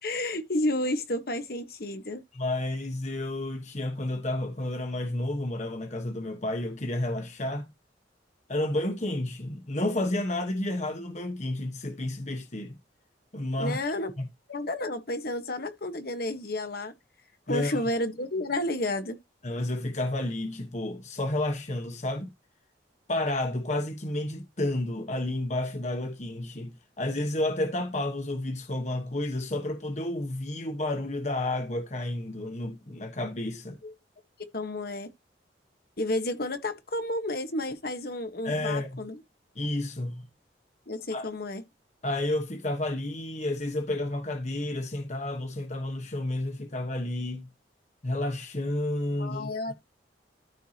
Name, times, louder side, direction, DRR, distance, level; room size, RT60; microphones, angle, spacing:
voice 1, 0.0-2.2 13.6-14.1 14.5-16.9 17.5-19.2 33.8-33.9 34.5-35.1 36.0-39.2 40.9-41.6 49.2-49.7, left 1 dB, 55° left, 1.4 m, -31 dB
voice 2, 2.3-7.7 8.5-12.8 13.3-13.8 14.2-14.3 17.5-17.8 19.4-22.3 23.1-33.8 38.4-39.0 39.5-40.2 41.1-41.3 42.0-47.5 48.0-49.7, left 1 dB, 40° left, 1.3 m, -31 dB
14.0 x 4.7 x 2.9 m
head